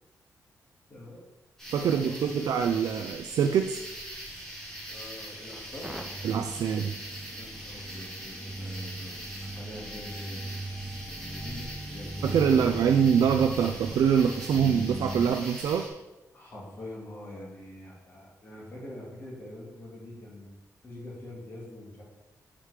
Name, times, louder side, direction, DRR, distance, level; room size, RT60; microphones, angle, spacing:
voice 1, 0.9-1.2 1.8-2.8 4.9-6.0 7.3-10.6 11.1-12.8 16.3-20.5 20.8-22.0, left 1 dB, 35° left, -4 dB, 2.2 m, -44 dB
sound 1, 1.6-15.9, equal, 5° left, 2.1 m, -42 dB
voice 2, 1.7-3.8 6.2-7.0 12.2-15.9, right 7 dB, 80° right, 5 dB, 0.4 m, -24 dB
sound 2, 5.8-15.3, right 1 dB, 10° right, 0.7 m, -39 dB
7.3 x 5.0 x 4.9 m, 1.0 s
wide cardioid pair, 160°, 6 cm